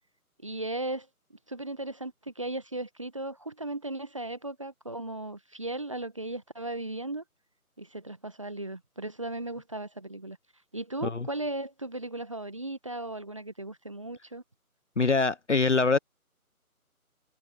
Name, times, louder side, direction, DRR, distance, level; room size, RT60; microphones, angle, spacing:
voice 1, 0.4-1.1 1.5-7.2 7.8-10.4 10.7-14.4, right 2 dB, 20° right, 1.2 m, -36 dB
voice 2, 15.0-16.0, left 4 dB, 50° left, 1.2 m, -24 dB
figure-of-eight pair, 160°, 44 cm